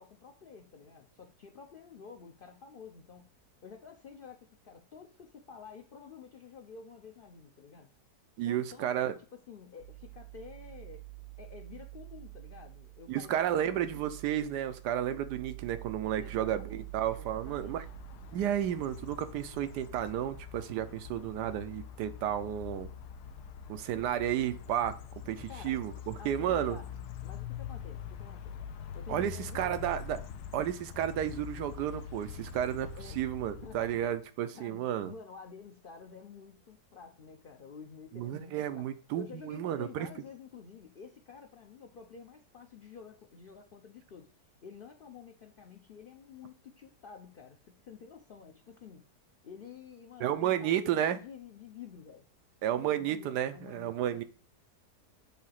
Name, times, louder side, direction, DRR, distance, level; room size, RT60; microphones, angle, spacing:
voice 1, 0.0-3.3 3.6-7.9 8.5-11.0 11.4-14.0 16.2-16.9 17.2-17.8 25.5-25.7 26.2-26.9 27.2-28.6 28.9-29.8 33.0-33.2 33.6-34.0 34.5-38.9 39.1-44.3 44.6-49.0 49.4-52.3 52.8-54.2, left 6 dB, 55° left, 3 dB, 0.6 m, -50 dB
voice 2, 8.4-9.1 13.1-17.8 18.3-22.9 23.7-25.0 25.3-26.8 29.1-30.2 30.5-35.1 38.1-40.1 50.2-51.2 52.6-54.2, right 11 dB, 85° right, 12 dB, 1.2 m, -32 dB
sound 1, 9.8-20.5, right 27 dB, 55° right, 0.9 m, -48 dB
sound 2, 16.6-34.2, left 7 dB, 80° left, 1.1 m, -45 dB
7.2 x 2.8 x 5.7 m, 0.38 s
omnidirectional pair, 1.7 m